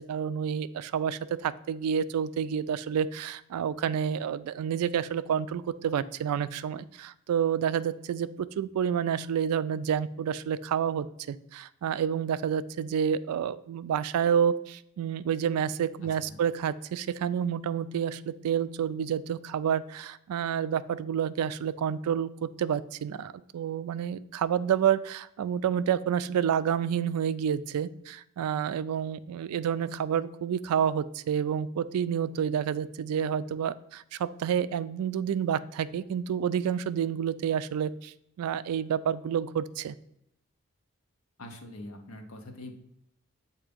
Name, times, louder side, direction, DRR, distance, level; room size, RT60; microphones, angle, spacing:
voice 1, 0.1-39.9, right 8 dB, 90° right, 16 dB, 0.3 m, -29 dB
voice 2, 16.0-16.4 41.4-42.7, left 1 dB, 75° left, 3 dB, 0.9 m, -44 dB
7.0 x 2.7 x 4.9 m, 0.78 s
head